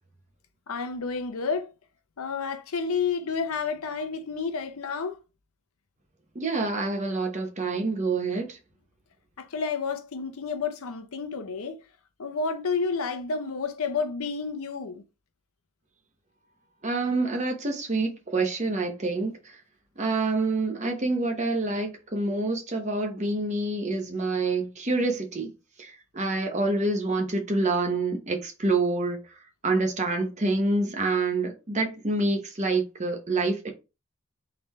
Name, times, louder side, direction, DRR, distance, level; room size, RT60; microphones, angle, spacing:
voice 1, 0.7-1.7 2.2-5.2 9.4-11.8 12.2-15.0, left 5 dB, 90° left, 0.7 m, -30 dB
voice 2, 6.3-8.6 16.8-19.6 20.0-25.5 25.8-29.2 29.6-33.7, right 3 dB, 35° right, 0.9 m, -27 dB
3.8 x 3.4 x 3.1 m
head